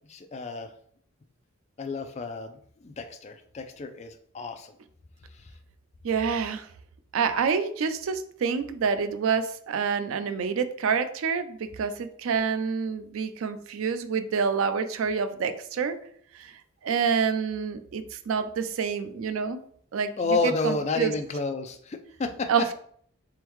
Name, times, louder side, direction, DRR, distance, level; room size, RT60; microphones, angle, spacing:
voice 1, 0.1-0.7 1.8-4.7 5.3-5.5 20.2-22.5, left 3 dB, 30° left, 7 dB, 0.3 m, -30 dB
voice 2, 6.0-6.7 7.1-16.0 16.3-16.5 16.8-19.6 19.9-20.1 20.6-21.1 22.5-22.7, right 6 dB, 75° right, 10 dB, 0.4 m, -27 dB
3.6 x 3.4 x 3.0 m, 0.62 s
head